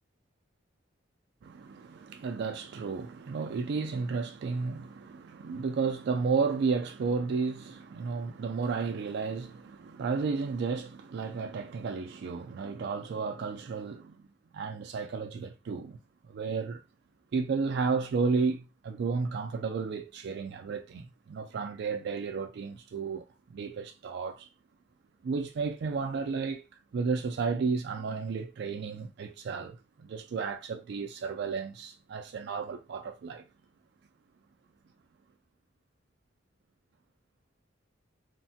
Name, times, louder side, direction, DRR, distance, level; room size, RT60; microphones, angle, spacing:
voice 1, 1.4-14.2 14.5-16.0 16.3-16.8 17.3-24.5 25.2-26.6 26.9-33.4, right 5 dB, 60° right, 0.3 m, -33 dB
3.1 x 2.1 x 2.7 m
head